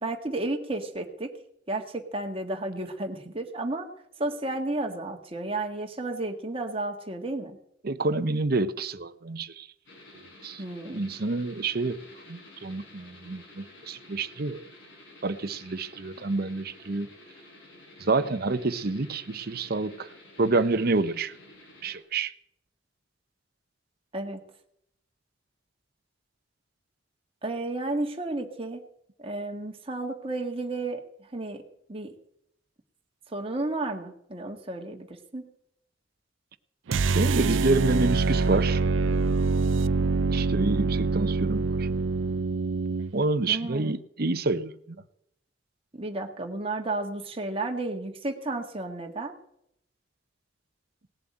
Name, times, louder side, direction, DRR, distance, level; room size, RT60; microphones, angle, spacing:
voice 1, 0.0-1.3 1.7-3.9 4.2-7.6 10.6-11.0 24.1-24.4 27.4-28.9 29.2-31.6 31.9-32.1 33.3-35.5 43.5-43.9 45.9-49.3, right 2 dB, 30° right, 1.8 m, -32 dB
voice 2, 7.8-9.7 10.4-10.6 10.9-12.0 12.3-14.6 15.2-17.1 18.0-20.1 20.4-21.3 21.8-22.3 37.1-38.8 40.3-41.9 43.1-45.0, right 3 dB, 55° right, 0.8 m, -28 dB
sound 1, 9.9-22.0, left 2 dB, 85° left, 7.0 m, -51 dB
sound 2, 36.9-43.1, right 4 dB, 90° right, 0.5 m, -25 dB
18.0 x 7.6 x 8.8 m
head